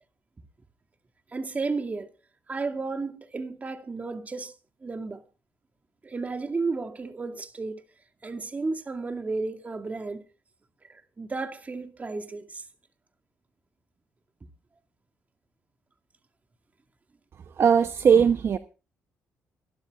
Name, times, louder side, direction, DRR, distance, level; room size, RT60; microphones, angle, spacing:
voice 1, 1.3-2.1 2.5-4.5 4.8-5.2 6.0-7.8 8.2-10.3 10.9-12.6, right 3 dB, 30° right, 2.3 m, -33 dB
voice 2, 17.6-18.6, right 7 dB, 50° right, 0.9 m, -19 dB
25.5 x 12.5 x 2.4 m
cardioid pair, 80°, 5 cm